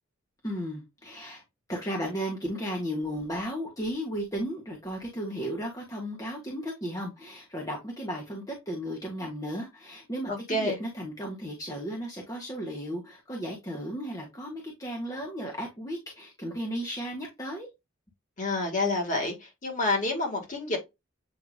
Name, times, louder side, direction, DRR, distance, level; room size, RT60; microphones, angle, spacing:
voice 1, 0.4-1.4 1.7-17.7, equal, 15° left, 1.1 m, -35 dB
voice 2, 10.3-10.8 18.4-20.8, left 2 dB, 35° left, 1.6 m, -28 dB
7.9 x 2.8 x 2.3 m
head